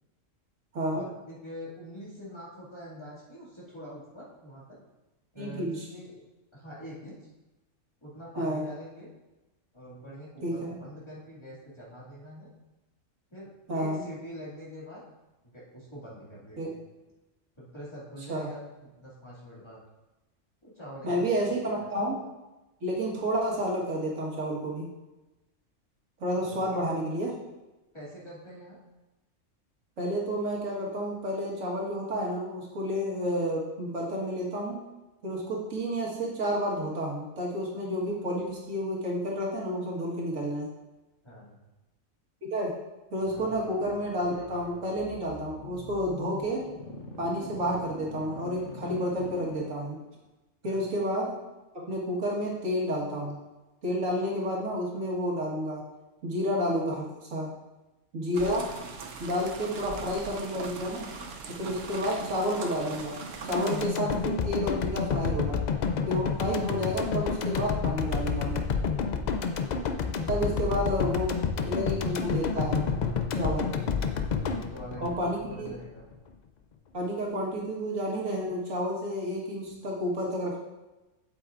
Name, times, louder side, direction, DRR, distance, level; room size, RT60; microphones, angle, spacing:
voice 1, 0.9-4.8 5.3-6.2 6.5-7.2 8.0-9.1 9.7-12.5 13.3-15.0 15.4-16.7 17.6-19.8 20.6-21.3 21.8-21.9 26.4-26.6 27.9-28.8 41.2-41.6 43.4-43.5 50.6-50.9 70.3-71.0 74.4-76.0, equal, 20° left, -8 dB, 2.3 m, -44 dB
voice 2, 5.4-5.9 8.4-8.6 10.4-10.5 13.7-14.0 16.6-16.7 18.3-18.5 21.0-22.2 22.8-24.9 26.2-27.4 30.0-34.8 35.2-40.7 42.4-42.7 43.1-46.7 47.2-50.0 50.6-51.3 51.7-53.4 53.8-55.8 56.2-57.5 58.1-58.7 59.2-61.1 61.6-63.2 63.4-65.6 66.1-68.6 70.3-71.3 71.6-72.8 73.3-73.7 75.0-75.7 76.9-80.6, equal, 90° right, -4 dB, 2.0 m, -30 dB
sound 1, 43.2-50.1, left 3 dB, 80° left, 1.4 m, -44 dB
sound 2, 58.3-63.9, right 4 dB, 60° right, 0.9 m, -40 dB
sound 3, 63.5-75.7 76.1-76.2, left 5 dB, 60° left, 0.4 m, -29 dB
8.0 x 8.0 x 2.5 m, 1.1 s
omnidirectional pair, 1.3 m